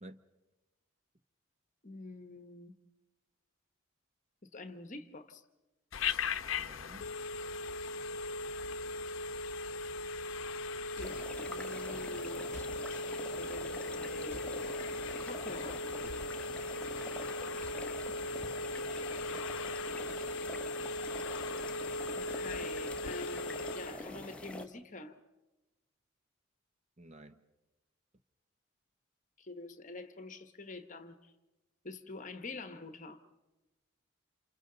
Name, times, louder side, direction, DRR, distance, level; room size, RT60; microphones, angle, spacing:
voice 1, 1.8-2.7 4.5-5.4 11.0-12.5 13.4-15.8 22.1-25.2 29.4-31.3 31.8-33.2, left 3 dB, 40° left, 1.1 m, -46 dB
Telephone, 5.9-24.0, left 3 dB, 75° left, 0.7 m, -38 dB
voice 2, 6.6-7.1 8.6-8.7 19.3-19.5 20.0-20.2 27.0-27.4, right 1 dB, 30° right, 0.7 m, -53 dB
sound 1, 10.9-11.1 12.5-12.7 14.3-14.5 16.0-16.2 17.6-17.8, left 1 dB, 10° right, 3.8 m, -48 dB
sound 2, 11.0-24.6, left 1 dB, 5° left, 0.8 m, -46 dB
29.0 x 28.0 x 3.9 m
head